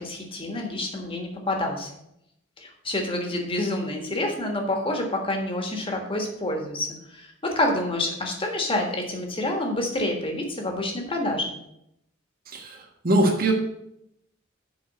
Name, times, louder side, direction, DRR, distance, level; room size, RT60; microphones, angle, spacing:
voice 1, 0.0-1.9 2.6-11.5, left 1 dB, 30° left, 2 dB, 1.5 m, -28 dB
voice 2, 12.5-13.5, right 1 dB, 50° right, 2 dB, 1.5 m, -22 dB
7.2 x 4.8 x 6.6 m, 0.79 s
head